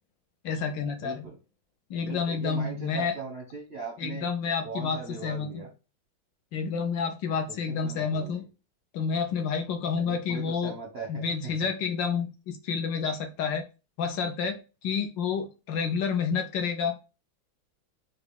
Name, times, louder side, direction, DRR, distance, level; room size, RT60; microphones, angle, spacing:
voice 1, 0.4-1.3 1.9-3.2 4.0-5.6 6.5-8.4 8.9-10.8 11.1-13.7 14.0-17.0, left 6 dB, 70° left, 6 dB, 1.2 m, -29 dB
voice 2, 1.0-1.4 2.0-4.3 4.6-5.7 7.7-8.4 9.9-11.7, right 4 dB, 55° right, -1 dB, 0.7 m, -39 dB
5.9 x 2.3 x 3.3 m, 0.31 s
omnidirectional pair, 2.3 m